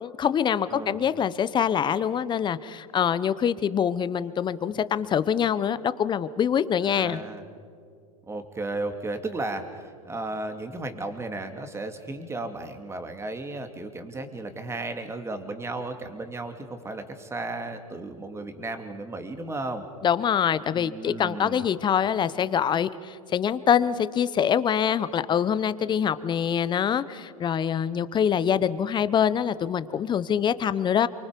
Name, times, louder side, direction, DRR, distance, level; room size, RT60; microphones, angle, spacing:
voice 1, 0.0-7.2 20.0-31.1, left 8 dB, 25° left, 15 dB, 1.0 m, -25 dB
voice 2, 0.7-1.0 6.8-7.4 8.3-19.8 20.7-21.7, right 2 dB, 15° right, 6 dB, 2.6 m, -34 dB
28.0 x 25.0 x 5.3 m, 2.2 s
hypercardioid pair, 100°, 18 cm